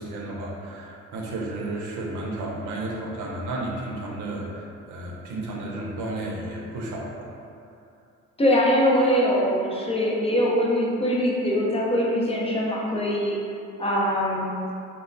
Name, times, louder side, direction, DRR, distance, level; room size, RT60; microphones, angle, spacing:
voice 1, 0.0-7.1, right 2 dB, 80° right, -3 dB, 0.6 m, -32 dB
voice 2, 8.4-13.4 13.8-14.5, equal, 20° left, -4 dB, 0.5 m, -22 dB
2.2 x 2.1 x 3.7 m, 2.6 s
cardioid pair, 90°, 30 cm